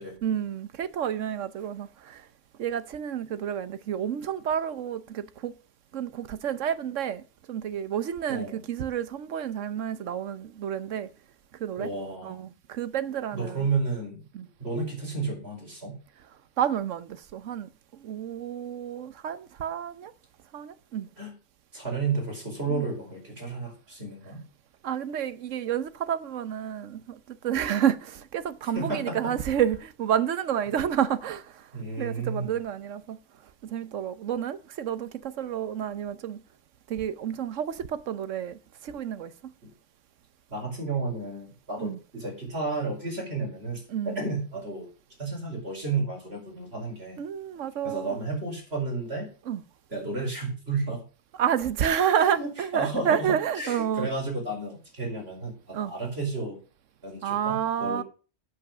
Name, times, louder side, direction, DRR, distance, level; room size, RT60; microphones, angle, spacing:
voice 1, 0.2-2.3 2.6-5.6 5.9-11.1 11.5-11.9 12.2-13.7 14.3-14.5 16.6-20.1 20.5-21.1 22.7-22.9 24.8-31.7 32.0-33.2 33.6-36.4 36.9-39.5 41.8-42.0 43.9-44.2 47.2-48.2 49.5-49.6 51.4-54.1 55.7-55.9 57.2-58.0, right 9 dB, 80° right, 1.2 m, -30 dB
voice 2, 8.3-8.6 11.8-12.5 13.3-14.2 14.6-16.0 21.2-21.3 21.7-24.4 28.7-29.3 31.7-32.5 40.5-44.9 45.2-47.2 47.8-49.3 49.9-51.0 52.2-56.6 57.0-58.0, right 3 dB, 55° right, 5.3 m, -32 dB
8.6 x 7.8 x 6.7 m
omnidirectional pair, 1.3 m